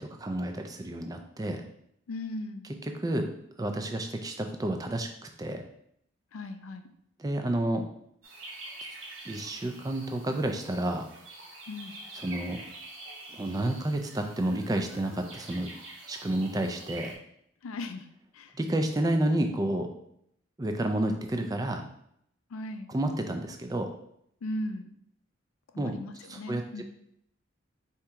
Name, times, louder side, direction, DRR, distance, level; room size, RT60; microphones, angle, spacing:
voice 1, 0.0-1.6 2.8-3.3 3.6-5.6 7.2-7.9 9.2-11.1 12.2-12.6 13.3-15.7 16.1-17.1 18.6-19.9 20.6-21.9 22.9-23.9 25.8-26.0 26.3-26.8, right 1 dB, 20° right, 5 dB, 0.3 m, -30 dB
voice 2, 2.1-2.7 6.3-6.9 11.7-12.0 17.6-18.1 18.3-18.5 22.5-22.9 24.4-24.9 25.7-26.8, left 1 dB, 90° left, 8 dB, 0.4 m, -37 dB
sound 1, 8.2-17.1, right 2 dB, 80° right, 1.1 m, -46 dB
4.4 x 2.9 x 3.5 m, 0.73 s
head